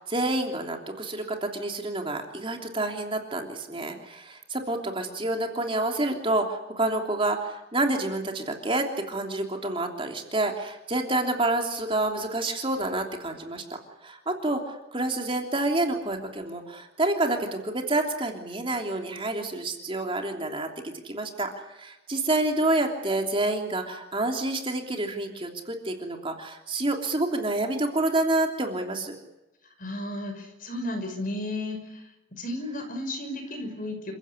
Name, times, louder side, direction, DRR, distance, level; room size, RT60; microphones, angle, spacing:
voice 1, 0.0-13.6 14.0-21.5 21.8-29.1, right 2 dB, 25° right, 3 dB, 3.1 m, -28 dB
voice 2, 29.8-32.0 32.3-34.1, left 1 dB, 45° left, 6 dB, 5.9 m, -33 dB
29.0 x 15.5 x 9.9 m, 0.94 s
head